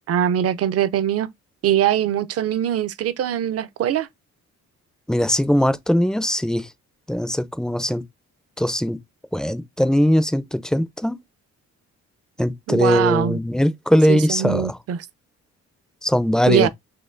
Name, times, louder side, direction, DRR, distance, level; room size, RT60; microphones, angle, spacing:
voice 1, 0.1-1.3 1.6-4.1 12.7-13.4 14.1-15.0 16.5-16.7, right 10 dB, 55° right, 0.5 m, -22 dB
voice 2, 5.1-6.7 7.1-8.0 8.6-9.0 9.3-11.2 12.4-14.8 16.0-16.7, equal, ahead, 0.4 m, -20 dB
4.3 x 3.0 x 2.5 m
cardioid pair, 90°, 30 cm